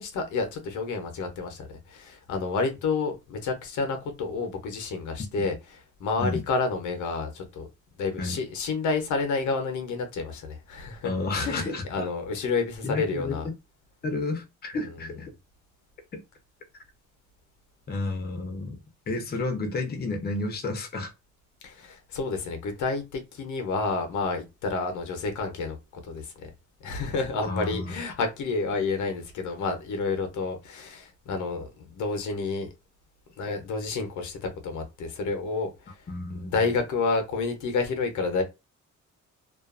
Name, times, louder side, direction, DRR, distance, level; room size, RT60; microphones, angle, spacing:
voice 1, 0.0-7.7 8.0-13.5 14.8-15.0 21.6-26.5 26.8-32.7 33.4-36.1 36.3-38.4, left 4 dB, 75° left, 0.8 m, -30 dB
voice 2, 11.0-12.1 12.8-13.4 14.0-15.3 16.1-16.2 17.9-18.8 19.1-21.1 27.5-28.0 36.1-36.6, left 3 dB, 30° left, 0.7 m, -31 dB
2.5 x 2.3 x 2.4 m
cardioid pair, 90°, 30 cm